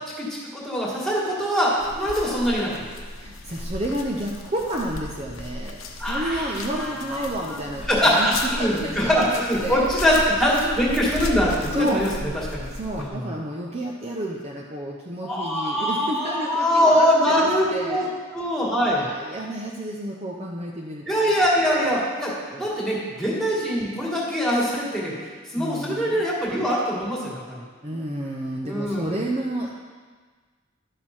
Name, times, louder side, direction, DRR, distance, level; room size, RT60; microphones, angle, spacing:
voice 1, 0.2-2.8 6.0-6.5 6.8-7.1 7.5-7.6 7.9-12.1 12.5-12.7 13.0-13.2 15.2-19.0 21.1-25.1 25.5-27.4 28.6-29.1, equal, ahead, -5 dB, 2.1 m, -23 dB
sound 1, 1.8-13.1, left 2 dB, 80° left, 1.0 m, -35 dB
voice 2, 3.2-5.8 6.1-9.9 10.5-10.7 11.7-12.0 12.7-18.1 18.8-21.1 22.5-23.0 25.5-26.2 27.8-29.9, right 1 dB, 30° right, -2 dB, 0.7 m, -31 dB
12.0 x 6.6 x 4.4 m, 1.5 s
head